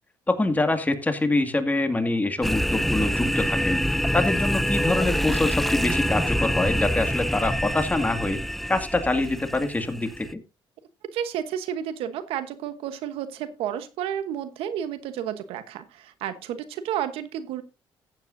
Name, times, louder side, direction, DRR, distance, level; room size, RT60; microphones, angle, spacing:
voice 1, 0.3-8.4 8.7-10.4, left 2 dB, 15° left, 7 dB, 2.2 m, -25 dB
sound 1, 2.4-10.3, equal, ahead, 0.5 m, -26 dB
voice 2, 11.1-17.6, right 10 dB, 90° right, 11 dB, 1.1 m, -31 dB
15.0 x 9.3 x 2.7 m, 0.28 s
cardioid pair, 80°, 9 cm